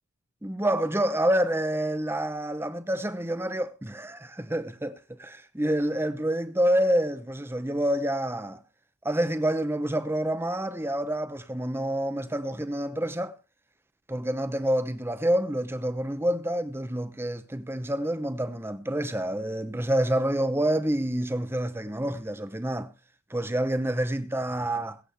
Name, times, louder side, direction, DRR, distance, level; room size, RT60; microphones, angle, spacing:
voice 1, 0.4-8.6 9.0-13.4 14.1-22.9 23.3-25.0, right 1 dB, 10° right, 0.8 m, -28 dB
22.0 x 8.3 x 3.4 m
head